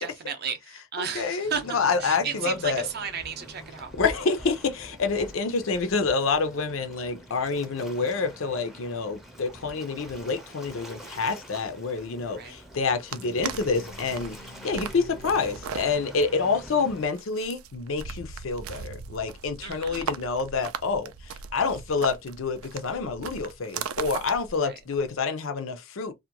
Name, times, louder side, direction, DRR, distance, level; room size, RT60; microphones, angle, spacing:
voice 1, 0.0-3.9 12.4-12.5 19.6-20.1 24.6-24.8, right 6 dB, 50° right, 0.6 m, -34 dB
voice 2, 1.1-2.9 4.0-14.4 14.6-26.1, left 4 dB, 70° left, 0.6 m, -27 dB
Waves surf, 1.4-17.1, equal, ahead, 0.5 m, -45 dB
sound 1, 13.1-25.2, right 6 dB, 90° right, 0.4 m, -38 dB
2.4 x 2.2 x 2.8 m
head